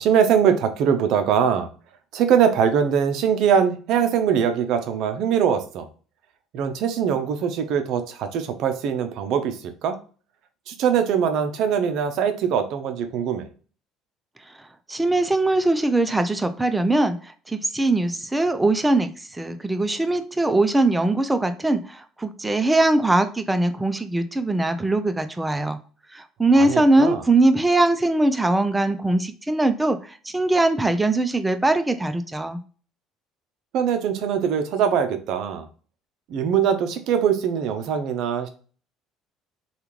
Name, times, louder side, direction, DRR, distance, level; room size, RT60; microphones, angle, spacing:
voice 1, 0.0-1.7 2.1-5.9 6.5-10.0 10.7-13.5 26.5-27.2 33.7-35.7 36.3-38.5, right 8 dB, 65° right, 8 dB, 0.5 m, -22 dB
voice 2, 14.9-17.2 17.5-25.8 26.1-32.6, right 2 dB, 15° right, 9 dB, 0.5 m, -21 dB
3.5 x 2.3 x 2.9 m, 0.40 s
supercardioid pair, 75°, 0 cm